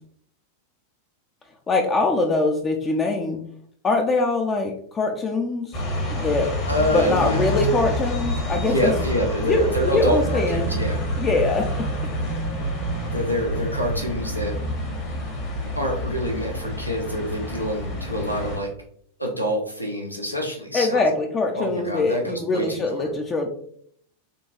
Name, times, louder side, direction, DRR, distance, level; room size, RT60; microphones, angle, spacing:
voice 1, 1.7-3.4 3.8-5.8 6.1-6.5 6.9-8.7 9.5-9.6 9.9-10.7 11.2-11.7 20.7-23.5, left 3 dB, 20° left, 3 dB, 0.4 m, -23 dB
sound 1, 5.7-18.6, equal, 40° left, 1.0 m, -27 dB
voice 2, 6.7-7.5 8.6-11.0 13.1-14.6 15.8-18.7 19.2-21.0 21.5-23.1, equal, 85° left, 1 dB, 0.6 m, -26 dB
3.8 x 2.2 x 2.6 m, 0.63 s
figure-of-eight pair, 90°, 0 cm